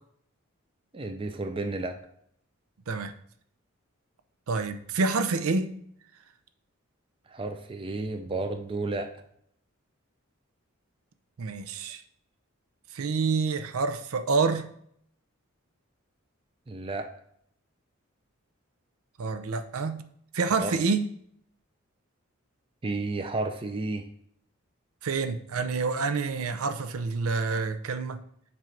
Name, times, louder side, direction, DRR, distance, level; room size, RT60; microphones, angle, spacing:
voice 1, 0.9-2.0 7.3-9.1 16.7-17.1 20.6-20.8 22.8-24.1, right 2 dB, 25° right, 6 dB, 0.4 m, -32 dB
voice 2, 4.5-5.7 11.4-12.0 12.9-14.7 19.2-20.0 20.3-21.0 25.0-28.2, right 4 dB, 80° right, 9 dB, 0.5 m, -27 dB
7.6 x 2.6 x 5.7 m, 0.67 s
head